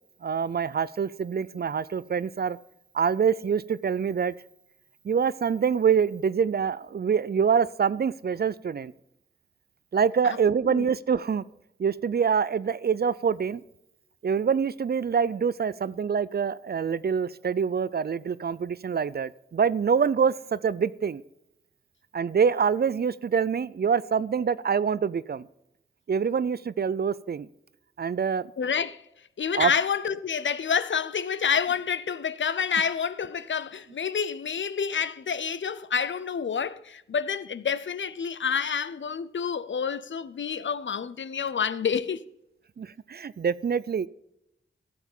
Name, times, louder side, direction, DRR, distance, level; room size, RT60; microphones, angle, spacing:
voice 1, 0.2-2.6 2.9-4.3 5.0-8.9 9.9-11.4 11.8-13.6 14.2-21.2 22.1-25.5 26.1-27.5 28.0-28.5 29.5-29.7 42.8-44.1, right 6 dB, 55° right, 0.4 m, -25 dB
voice 2, 28.6-29.0 29.4-42.2, left 7 dB, 75° left, 0.6 m, -28 dB
14.0 x 7.0 x 5.5 m
wide cardioid pair, 65°, 20 cm